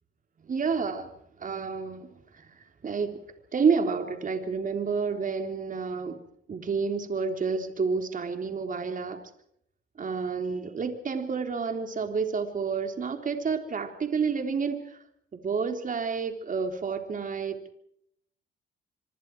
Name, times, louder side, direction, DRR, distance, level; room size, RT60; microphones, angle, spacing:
voice 1, 0.5-1.1 1.4-2.1 2.8-3.2 3.5-6.2 6.5-9.2 10.0-15.0 15.3-17.7, right 5 dB, 40° right, 5 dB, 3.8 m, -29 dB
26.0 x 25.0 x 4.8 m, 0.72 s
cardioid pair, 90°, 20 cm